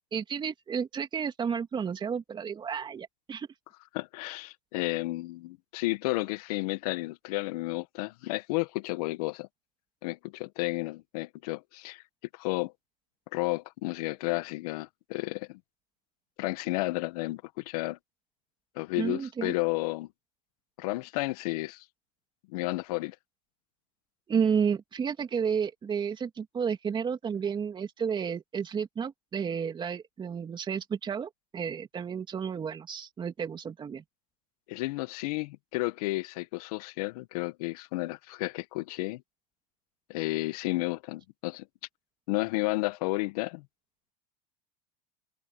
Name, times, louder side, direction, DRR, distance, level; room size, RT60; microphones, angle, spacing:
voice 1, 0.0-3.5 19.0-19.5 24.3-34.0, right 6 dB, 25° right, 2.9 m, -31 dB
voice 2, 3.9-9.5 10.0-12.0 12.3-12.7 13.3-15.6 16.4-18.0 18.7-20.1 20.8-21.8 22.5-23.1 34.7-39.2 40.1-41.7 42.3-43.6, left 21 dB, 70° left, 1.4 m, -32 dB
supercardioid pair, 125°, 20 cm